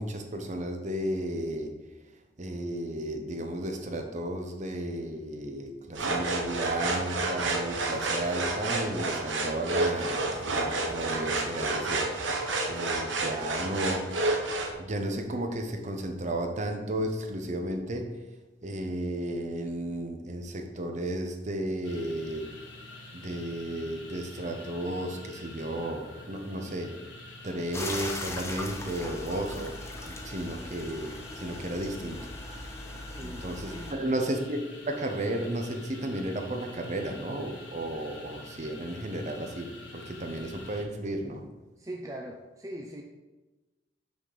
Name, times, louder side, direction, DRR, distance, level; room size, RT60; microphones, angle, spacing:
voice 1, 0.0-1.7 2.4-14.1 14.8-18.1 18.6-22.5 23.1-27.0 27.4-29.8 30.1-32.2 32.6-32.7 33.2-41.4, right 1 dB, 40° right, 5 dB, 0.8 m, -33 dB
sound 1, 5.9-14.7, right 2 dB, 80° right, 1.0 m, -30 dB
sound 2, 21.8-40.8, left 2 dB, 80° left, 1.3 m, -47 dB
sound 3, 27.7-33.9, left 2 dB, 15° left, 0.7 m, -39 dB
voice 2, 33.1-34.2 41.8-43.0, right 1 dB, 20° right, 0 dB, 0.5 m, -41 dB
6.3 x 4.9 x 5.4 m, 1.1 s
head